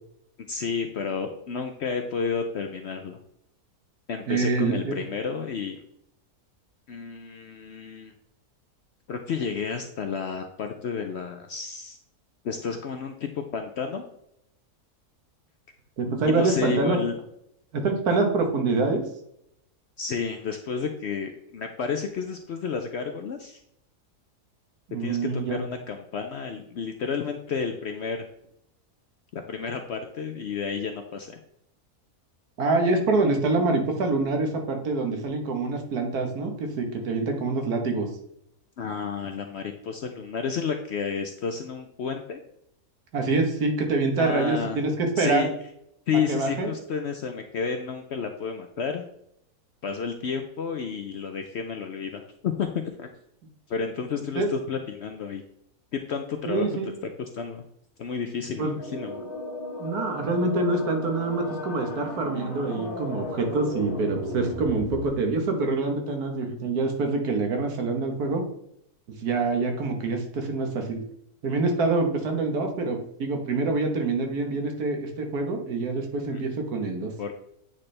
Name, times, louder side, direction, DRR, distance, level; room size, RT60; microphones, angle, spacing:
voice 1, 0.5-3.2 4.1-5.8 6.9-8.1 9.1-12.0 12.4-14.0 16.3-17.2 20.0-23.6 25.0-25.2 25.5-28.2 29.3-31.4 38.8-42.4 44.2-44.8 45.2-45.5 46.1-49.0 49.8-53.1 53.7-55.4 55.9-56.7 57.3-57.6 58.0-59.3 76.3-76.4 77.2-77.3, left 6 dB, 65° left, 5 dB, 0.7 m, -31 dB
voice 2, 4.3-5.0 16.0-17.0 17.7-19.0 24.9-25.6 32.6-38.1 43.1-45.5 46.3-46.7 54.3-54.5 56.5-56.9 58.6-58.8 59.8-68.5 69.2-71.0 71.4-77.1, right 3 dB, 80° right, 3 dB, 1.6 m, -26 dB
sound 1, 58.6-65.0, left 1 dB, 35° left, 1.6 m, -35 dB
8.8 x 3.2 x 4.2 m, 0.75 s
omnidirectional pair, 1.6 m